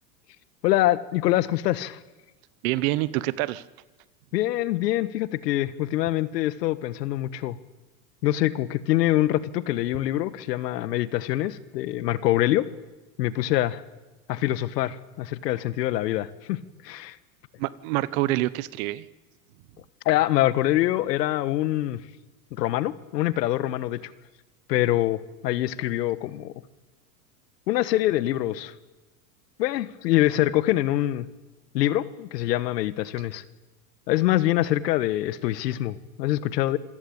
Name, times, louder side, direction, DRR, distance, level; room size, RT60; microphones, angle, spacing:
voice 1, 0.6-2.0 4.3-7.6 8.2-12.7 13.2-13.8 14.3-16.6 16.8-17.2 20.0-22.0 22.5-24.1 24.7-26.5 27.7-28.7 29.6-31.2 31.7-33.4 34.1-36.8, left 15 dB, 75° left, 17 dB, 1.6 m, -24 dB
voice 2, 2.6-3.6 17.6-19.0, right 17 dB, 55° right, 19 dB, 1.2 m, -26 dB
26.0 x 16.5 x 8.8 m, 1.1 s
supercardioid pair, 130°, 49 cm